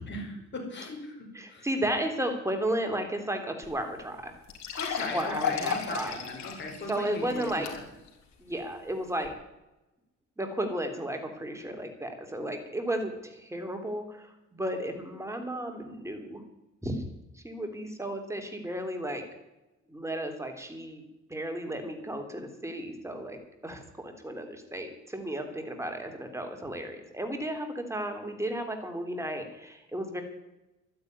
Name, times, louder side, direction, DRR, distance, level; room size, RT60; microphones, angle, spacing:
voice 1, 0.5-1.7 4.8-7.8, left 2 dB, 35° left, 0 dB, 5.3 m, -38 dB
voice 2, 1.3-4.3 4.9-6.2 6.9-7.7 8.4-9.3 10.4-16.4 16.8-17.0 17.3-19.2 19.9-30.2, right 1 dB, 10° right, 5 dB, 3.4 m, -34 dB
sound 1, 3.6-3.7 4.0-4.1 4.5-8.1 8.6-8.7 9.2-9.3, left 7 dB, 65° left, 3.6 m, -35 dB
12.0 x 10.5 x 9.8 m, 0.94 s
cardioid pair, 90°, 30 cm